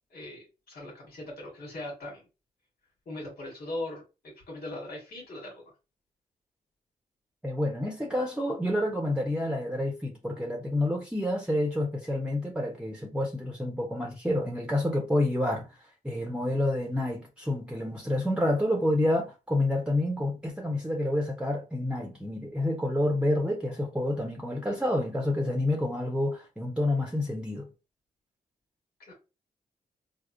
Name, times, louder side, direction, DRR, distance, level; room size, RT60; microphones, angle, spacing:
voice 1, 0.1-2.2 3.0-5.7 29.1-29.2, left 1 dB, 70° left, 1.4 m, -40 dB
voice 2, 7.4-15.7 16.0-27.7, left 1 dB, 5° right, 0.9 m, -28 dB
3.5 x 2.0 x 2.5 m
supercardioid pair, 40°, 16 cm